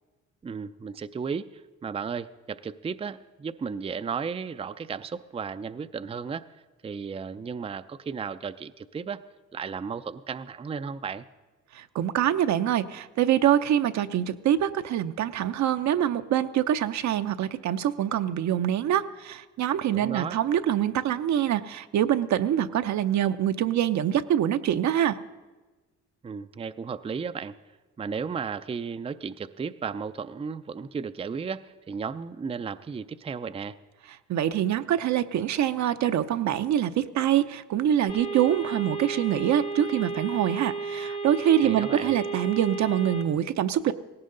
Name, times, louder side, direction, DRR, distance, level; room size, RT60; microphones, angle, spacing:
voice 1, 0.4-6.5 6.8-9.2 9.5-11.2 19.9-20.4 26.2-27.6 28.0-33.8 41.6-42.2, right 6 dB, 20° right, 11 dB, 0.4 m, -34 dB
voice 2, 11.7-25.2 34.3-43.9, right 10 dB, 65° right, 10 dB, 0.7 m, -25 dB
sound 1, 38.1-43.2, right 4 dB, 90° left, 1.9 m, -33 dB
18.0 x 16.5 x 3.8 m, 1.2 s
cardioid pair, 90°, 30 cm